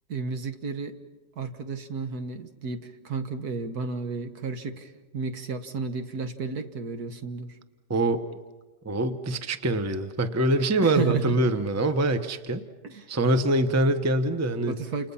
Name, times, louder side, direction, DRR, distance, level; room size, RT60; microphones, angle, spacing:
voice 1, 0.1-1.0 1.4-7.6 10.8-11.4 12.9-13.1 14.7-15.1, right 5 dB, 65° right, 7 dB, 1.9 m, -32 dB
voice 2, 7.9-8.3 8.8-12.6 13.1-14.7, right 1 dB, 10° right, 9 dB, 0.8 m, -24 dB
30.0 x 28.5 x 5.7 m, 1.2 s
omnidirectional pair, 1.8 m